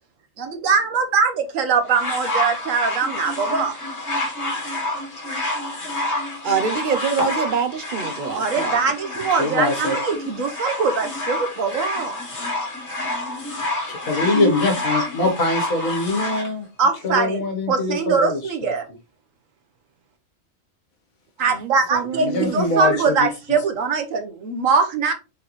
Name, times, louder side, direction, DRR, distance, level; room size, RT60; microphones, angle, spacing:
voice 1, 0.4-3.7 8.3-12.1 16.8-17.4 17.7-18.9 21.4-25.1, right 5 dB, 75° right, 1.3 m, -22 dB
sound 1, 1.9-16.5 17.3-17.4, left 1 dB, 55° left, 2.0 m, -28 dB
voice 2, 6.4-8.8 14.3-14.6 21.5-22.6, right 5 dB, 60° right, 0.5 m, -25 dB
voice 3, 9.4-10.0 13.9-16.7 17.0-18.7 22.1-23.3, left 2 dB, 85° left, 1.7 m, -23 dB
4.4 x 3.1 x 3.9 m
omnidirectional pair, 1.4 m